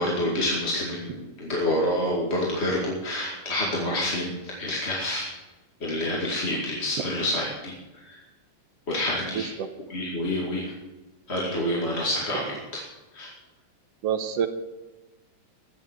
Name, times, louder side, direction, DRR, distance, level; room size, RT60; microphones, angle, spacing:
voice 1, 0.0-5.3 5.8-7.7 8.1-8.2 8.9-9.5 9.9-10.7 11.3-12.8 13.1-13.3, left 1 dB, 25° left, -3 dB, 2.0 m, -27 dB
voice 2, 9.3-9.7 14.0-14.5, right 8 dB, 65° right, 9 dB, 1.7 m, -27 dB
16.0 x 7.3 x 7.4 m, 1.1 s
omnidirectional pair, 3.6 m